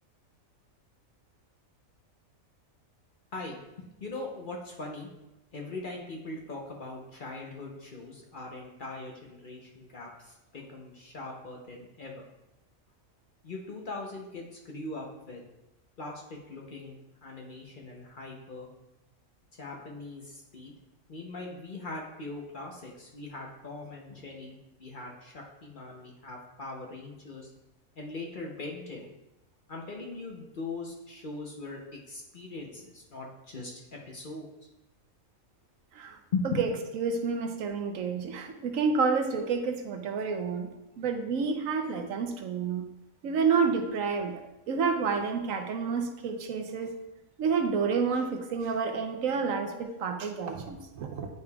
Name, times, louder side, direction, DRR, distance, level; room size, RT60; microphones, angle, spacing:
voice 1, 3.3-5.1 5.5-12.2 13.4-15.4 16.0-16.9 17.2-18.7 19.6-20.7 21.1-27.5 28.0-29.1 29.7-31.8 32.1-34.5 36.3-36.6 48.4-48.6 49.6-49.8, left 3 dB, 45° left, -1 dB, 0.8 m, -40 dB
voice 2, 37.0-40.7 41.0-42.8 43.2-44.3 44.7-46.9 47.4-51.3, right 5 dB, 75° right, 5 dB, 1.1 m, -29 dB
9.4 x 5.0 x 2.3 m, 0.94 s
omnidirectional pair, 1.4 m